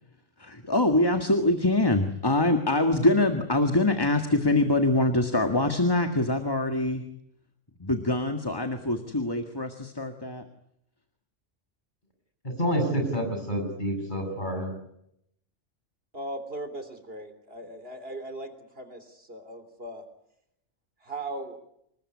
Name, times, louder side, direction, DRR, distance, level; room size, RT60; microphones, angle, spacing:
voice 1, 0.4-7.0 7.8-10.5, left 2 dB, 20° left, 6 dB, 1.8 m, -24 dB
voice 2, 12.4-14.7, equal, 40° left, 4 dB, 7.5 m, -28 dB
voice 3, 16.1-20.0 21.0-21.6, right 2 dB, 55° right, 9 dB, 3.4 m, -38 dB
26.5 x 21.0 x 9.8 m, 0.77 s
omnidirectional pair, 1.2 m